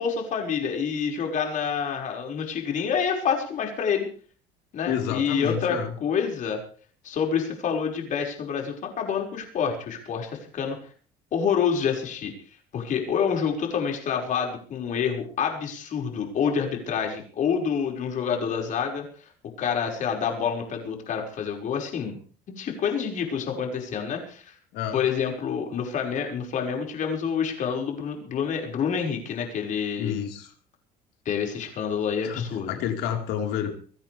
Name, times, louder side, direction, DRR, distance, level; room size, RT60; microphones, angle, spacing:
voice 1, 0.0-4.1 4.7-6.6 7.0-10.8 11.3-12.3 12.7-19.3 19.6-22.2 22.5-24.5 24.9-30.2 31.3-32.7, left 7 dB, 50° left, 2 dB, 5.8 m, -27 dB
voice 2, 4.9-5.9 24.7-25.0 30.0-30.5 32.2-33.7, left 9 dB, 80° left, 3 dB, 4.5 m, -29 dB
22.5 x 16.0 x 3.5 m, 0.43 s
cardioid pair, 135°, 17 cm